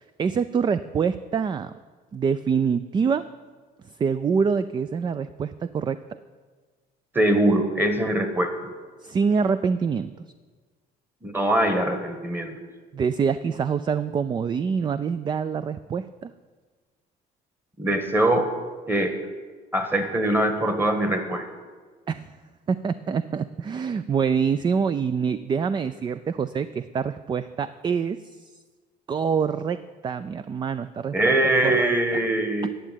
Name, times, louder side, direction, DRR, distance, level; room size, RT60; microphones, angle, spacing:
voice 1, 0.0-1.7 2.1-3.3 4.0-6.0 9.0-10.1 12.9-16.3 22.1-22.3 22.7-28.5 29.1-29.8 30.0-31.3 31.6-31.9, right 6 dB, 25° right, 13 dB, 0.3 m, -25 dB
voice 2, 7.1-8.7 11.2-12.5 17.8-18.5 18.9-19.2 19.7-21.4 31.1-32.7, right 1 dB, 10° right, 7 dB, 1.5 m, -22 dB
10.0 x 7.4 x 9.0 m, 1.5 s
cardioid pair, 110°, 17 cm